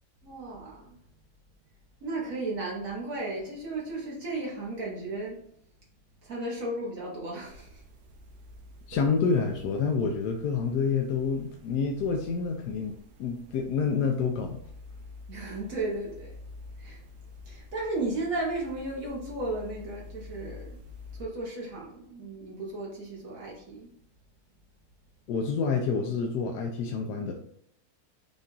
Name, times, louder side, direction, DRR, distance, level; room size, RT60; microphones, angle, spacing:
voice 1, 0.2-1.0 2.0-5.4 6.2-7.8 15.3-16.3 16.8-17.0 17.5-20.8 21.2-23.9, right 2 dB, 60° right, -3 dB, 1.4 m, -34 dB
sound 1, 7.5-21.2, left 3 dB, 85° right, 1.3 m, -48 dB
voice 2, 8.9-12.9 13.2-14.6 25.3-27.3, left 5 dB, 85° left, 2 dB, 1.1 m, -28 dB
5.5 x 2.4 x 3.9 m, 0.68 s
omnidirectional pair, 1.7 m